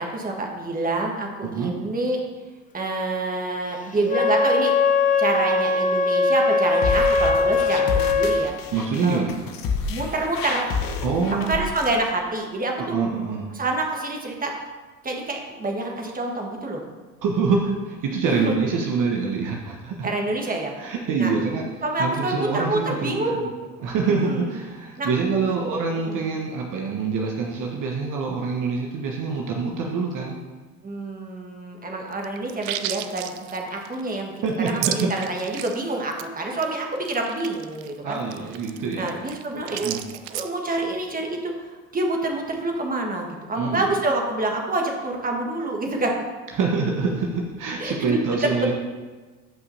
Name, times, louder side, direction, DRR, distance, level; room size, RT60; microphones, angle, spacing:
voice 1, 0.0-2.2 2.7-4.7 5.2-8.5 9.0-9.2 9.9-10.7 11.4-13.0 13.5-14.5 15.0-16.8 18.2-18.5 20.0-20.7 21.2-21.3 21.8-23.5 24.2-24.5 25.0-25.1 25.5-25.6 26.0-26.1 30.8-38.2 39.0-46.2 47.8-48.7, right 2 dB, 20° right, 1 dB, 1.6 m, -27 dB
Wind instrument woodwind instrument, 4.0-8.5, left 3 dB, 20° left, 0.6 m, -20 dB
sound 1, 6.7-11.9, left 5 dB, 45° left, 1.1 m, -29 dB
voice 2, 8.7-9.3 11.0-11.6 12.8-13.5 17.2-20.1 20.8-21.7 22.0-23.5 23.8-30.4 34.4-35.1 38.0-39.1 39.7-40.0 43.5-43.8 46.6-48.7, right 4 dB, 45° right, 0 dB, 1.2 m, -25 dB
sound 2, 32.1-35.8 36.1-36.3 36.6-36.7 37.0-40.5, right 13 dB, 60° right, 0.6 m, -33 dB
15.0 x 5.5 x 2.8 m, 1.3 s
figure-of-eight pair, 65°, 45 cm